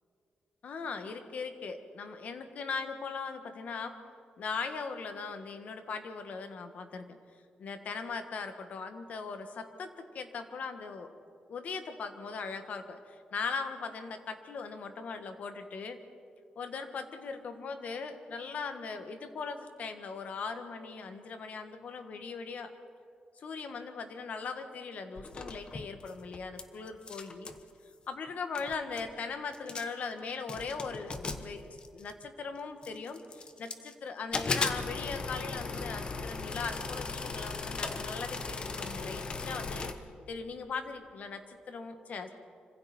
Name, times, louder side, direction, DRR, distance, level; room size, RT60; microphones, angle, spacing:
voice 1, 0.6-3.9 4.4-7.2 7.6-11.1 11.5-16.0 16.5-22.7 23.4-27.5 28.1-39.9 40.3-42.3, left 5 dB, 60° left, 7 dB, 1.7 m, -39 dB
sound 1, 25.2-26.6 26.9-27.6 28.3-28.4 28.6-29.1 29.5-30.1 30.5-32.3 32.8-33.9 34.3-39.9, left 4 dB, 35° left, 1.2 m, -37 dB
26.5 x 25.5 x 4.5 m, 2.4 s
wide cardioid pair, 140°, 3 cm